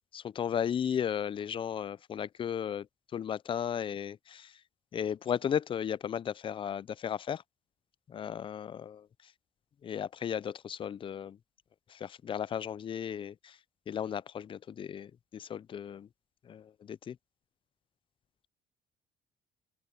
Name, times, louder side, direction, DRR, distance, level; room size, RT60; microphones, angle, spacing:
voice 1, 0.1-2.9 3.1-4.6 4.9-7.4 8.1-9.3 9.8-11.4 11.9-13.6 13.9-16.1 16.4-17.2, left 8 dB, 30° left, 0.4 m, -35 dB
open air
cardioid pair, 110°, 17 cm